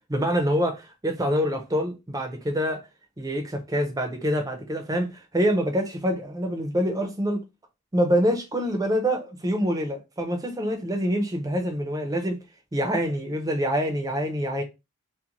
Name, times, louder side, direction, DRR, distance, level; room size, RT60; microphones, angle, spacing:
voice 1, 0.1-2.9 3.2-7.4 7.9-12.4 12.7-14.6, equal, 15° right, 0.5 m, -26 dB
2.5 x 2.1 x 2.9 m
head